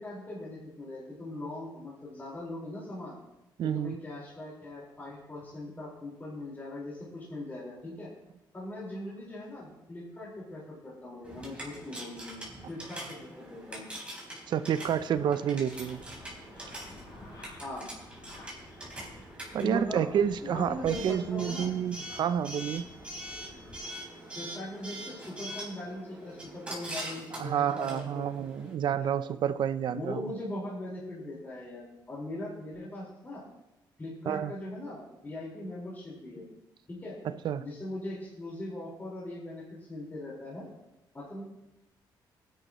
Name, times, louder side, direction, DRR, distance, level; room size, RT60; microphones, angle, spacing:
voice 1, 0.0-3.2 3.6-8.1 8.5-13.8 17.6-17.9 19.6-20.0 20.4-21.7 24.3-28.3 28.6-28.7 29.0-29.1 29.9-33.4 34.0-36.4 36.9-37.2 37.6-39.6 39.9-40.7 41.1-41.4, left 1 dB, 25° left, -7 dB, 4.8 m, -40 dB
voice 2, 3.6-4.0 14.5-16.0 19.5-22.9 27.4-30.2 34.3-34.5 37.2-37.6, right 9 dB, 65° right, 13 dB, 0.6 m, -29 dB
Coin (dropping) / Alarm, 11.2-28.7, right 1 dB, 15° right, 4.2 m, -43 dB
sound 1, 15.6-23.8, left 2 dB, 60° left, 5.5 m, -53 dB
20.0 x 10.5 x 3.1 m, 0.92 s
cardioid pair, 105°, 8 cm